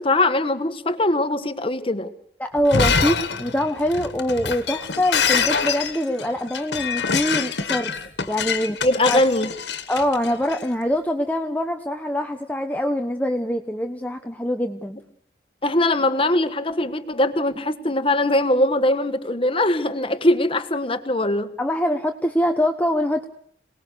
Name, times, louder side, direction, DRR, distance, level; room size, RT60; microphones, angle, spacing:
voice 1, 0.0-2.1 8.8-9.5 15.6-21.5, left 1 dB, 30° left, 10 dB, 1.4 m, -21 dB
voice 2, 2.4-7.9 8.3-8.8 9.0-9.2 9.9-15.0 21.6-23.2, left 1 dB, 10° left, 5 dB, 0.9 m, -24 dB
Shatter, 2.6-10.6, left 5 dB, 75° left, 1.8 m, -25 dB
27.5 x 19.5 x 6.8 m, 0.66 s
head